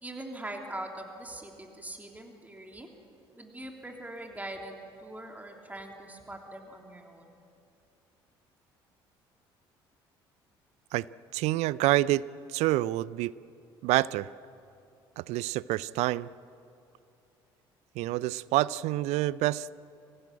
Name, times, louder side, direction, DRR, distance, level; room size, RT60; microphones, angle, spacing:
voice 1, 0.0-2.9 3.3-7.3, right 1 dB, 15° right, 2 dB, 3.2 m, -42 dB
voice 2, 11.3-12.2 12.5-13.3 13.8-14.3 15.2-16.3 18.0-19.7, right 16 dB, 65° right, 20 dB, 0.5 m, -27 dB
25.0 x 15.0 x 8.8 m, 2.7 s
hypercardioid pair, 55°, 12 cm